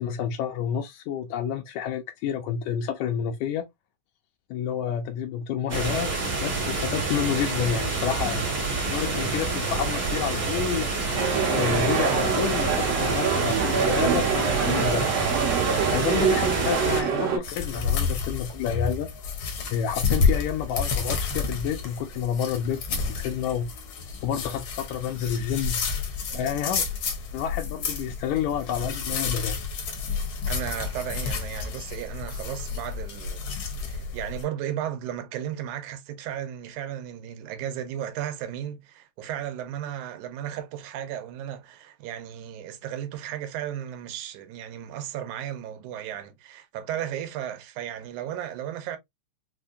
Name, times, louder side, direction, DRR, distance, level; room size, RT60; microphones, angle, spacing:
voice 1, 0.0-3.7 4.5-8.5 8.9-10.9 11.5-15.0 15.9-19.1 19.7-22.8 23.1-23.7 24.2-25.8 26.3-26.9 27.3-29.6, left 9 dB, 80° left, 1.8 m, -29 dB
sound 1, 5.7-17.0, right 3 dB, 40° right, 1.0 m, -28 dB
sound 2, 11.1-17.4, right 6 dB, 60° right, 2.0 m, -25 dB
sound 3, 17.4-34.4, left 5 dB, 65° left, 1.3 m, -30 dB
voice 2, 30.5-33.4 33.9-49.0, right 10 dB, 90° right, 2.1 m, -34 dB
5.1 x 2.1 x 2.5 m
omnidirectional pair, 3.4 m